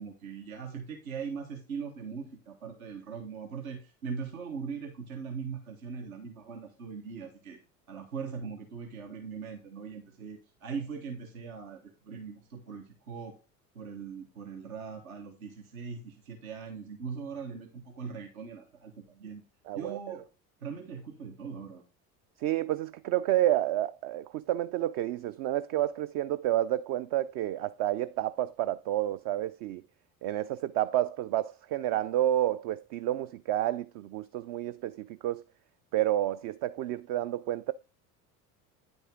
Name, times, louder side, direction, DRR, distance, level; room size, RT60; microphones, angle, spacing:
voice 1, 0.0-7.6 7.9-13.4 13.7-19.4 19.7-20.2 20.6-21.8, right 5 dB, 75° right, 1.3 m, -40 dB
voice 2, 19.7-20.0 22.4-29.8 30.2-35.4 35.9-37.7, right 13 dB, 50° right, 0.4 m, -30 dB
9.5 x 5.4 x 3.7 m
hypercardioid pair, 70°, 43 cm